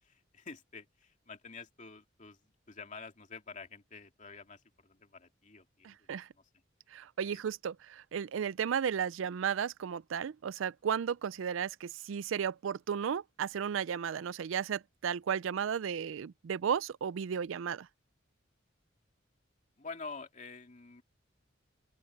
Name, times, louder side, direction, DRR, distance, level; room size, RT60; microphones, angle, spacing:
voice 1, 0.0-6.1 6.3-6.4 7.2-7.4 19.8-21.0, left 4 dB, 40° left, 2.5 m, -48 dB
voice 2, 5.8-6.3 6.9-17.9, right 7 dB, 80° right, 0.4 m, -34 dB
open air
head